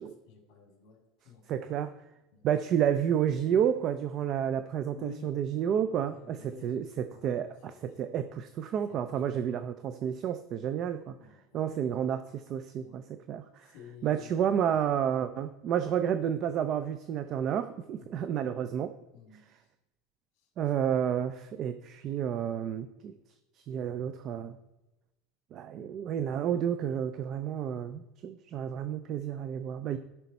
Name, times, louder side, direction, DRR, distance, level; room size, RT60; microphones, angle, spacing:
voice 1, 0.0-1.4 2.3-2.5 4.9-5.3 6.0-6.7 7.1-7.4 7.7-7.8 8.9-9.2 9.5-9.6 11.2-11.8 12.8-13.1 13.6-14.7 18.0-18.3 19.1-19.4, left 6 dB, 55° left, 2 dB, 2.4 m, -52 dB
voice 2, 1.5-1.9 2.4-11.1 11.5-13.0 13.3-13.7 14.0-18.9 20.6-23.1 23.7-24.6 25.5-30.0, right 9 dB, 40° right, 11 dB, 0.4 m, -30 dB
12.0 x 5.6 x 4.2 m, 0.99 s
supercardioid pair, 145°, 0 cm